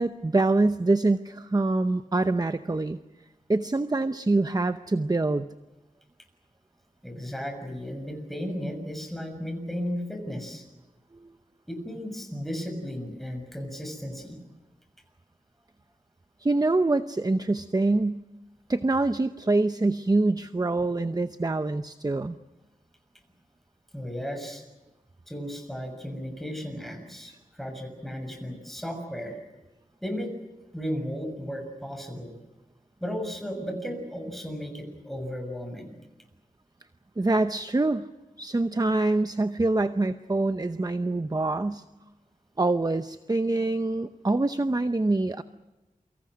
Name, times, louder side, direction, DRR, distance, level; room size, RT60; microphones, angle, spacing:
voice 1, 0.0-3.0 3.5-5.5 11.2-11.3 16.4-18.2 18.7-22.4 37.2-38.1 38.4-41.8 42.6-45.4, right 2 dB, 25° right, 10 dB, 0.7 m, -25 dB
voice 2, 7.0-10.6 11.7-14.4 23.9-24.6 25.3-29.4 30.0-30.3 30.7-32.3 33.0-35.9, equal, ahead, 5 dB, 6.5 m, -35 dB
29.0 x 24.5 x 6.2 m, 1.1 s
wide cardioid pair, 75°, 14 cm